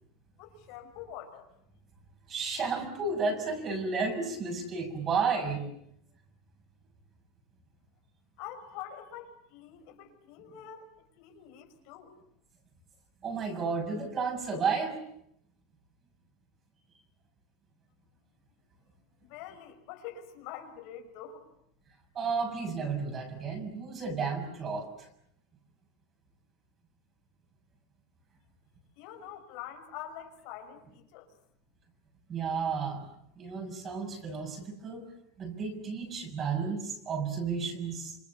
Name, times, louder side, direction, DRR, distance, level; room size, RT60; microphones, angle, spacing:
voice 1, 0.4-1.5 8.4-12.1 19.2-21.5 29.0-31.3, left 10 dB, 55° left, 5 dB, 5.8 m, -45 dB
voice 2, 2.3-5.7 13.2-15.0 22.1-25.1 32.3-33.1 33.4-35.0 35.4-38.2, right 5 dB, 25° right, 5 dB, 6.5 m, -32 dB
28.5 x 27.5 x 7.2 m, 0.73 s
supercardioid pair, 160°, 0 cm